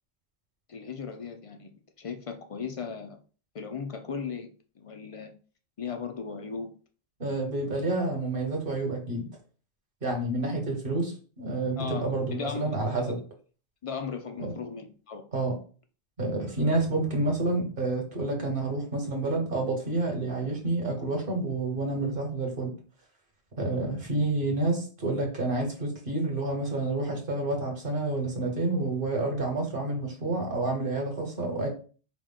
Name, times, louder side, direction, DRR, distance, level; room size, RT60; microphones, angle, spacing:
voice 1, 0.7-1.7 2.0-3.2 3.5-4.5 4.8-5.3 5.8-6.7 11.8-13.2 13.8-15.2, left 5 dB, 50° left, 0.4 m, -37 dB
voice 2, 7.2-9.3 10.0-13.2 14.4-14.5 15.3-15.6 16.2-22.7 23.6-31.7, right 2 dB, 55° right, 1.4 m, -29 dB
4.8 x 2.2 x 3.7 m
omnidirectional pair, 1.1 m